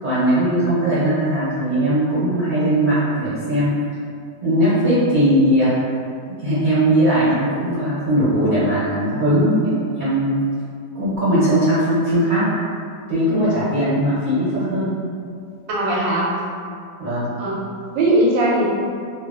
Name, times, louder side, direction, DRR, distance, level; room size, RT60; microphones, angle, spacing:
voice 1, 0.0-3.7 4.4-5.7 6.2-10.4 10.9-12.4 13.1-14.9 17.0-17.3, right 1 dB, 40° right, -14 dB, 0.8 m, -19 dB
voice 2, 13.3-13.6 15.7-16.3 17.4-17.6 17.9-18.7, right 1 dB, 85° right, -4 dB, 1.3 m, -19 dB
3.0 x 2.4 x 2.4 m, 2.2 s
omnidirectional pair, 2.0 m